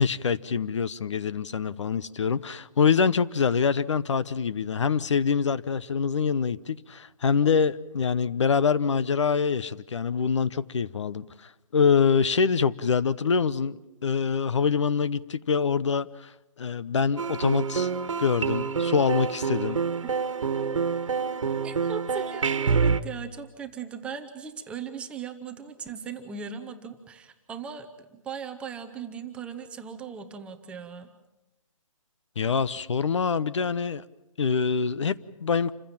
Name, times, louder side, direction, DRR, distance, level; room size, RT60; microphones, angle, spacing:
voice 1, 0.0-16.3 16.6-17.9 18.2-19.8 32.4-34.0 34.4-35.7, left 6 dB, 60° left, 0.9 m, -25 dB
sound 1, 17.2-23.0, right 5 dB, 65° right, 1.5 m, -27 dB
voice 2, 21.6-31.1, right 6 dB, 5° right, 0.8 m, -38 dB
28.0 x 15.5 x 8.8 m
hypercardioid pair, 165°, 18 cm